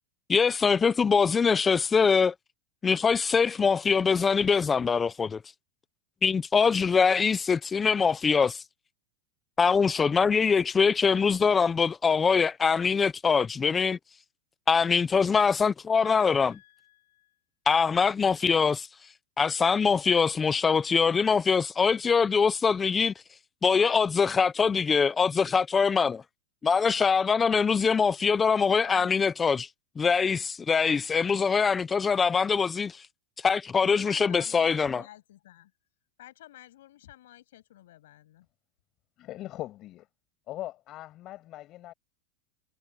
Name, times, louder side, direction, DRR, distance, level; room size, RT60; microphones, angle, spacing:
voice 1, 0.3-2.3 2.8-5.4 6.2-8.6 9.6-14.0 14.7-16.5 17.7-18.9 19.4-23.1 23.6-26.2 26.6-29.7 30.0-33.0 33.4-35.0, left 5 dB, 15° left, 0.5 m, -23 dB
voice 2, 16.0-17.4 28.7-29.2 33.8-35.7 36.2-38.5, left 14 dB, 75° left, 6.7 m, -51 dB
voice 3, 39.2-40.1 40.5-41.9, left 15 dB, 35° left, 5.6 m, -40 dB
supercardioid pair, 155°, 0 cm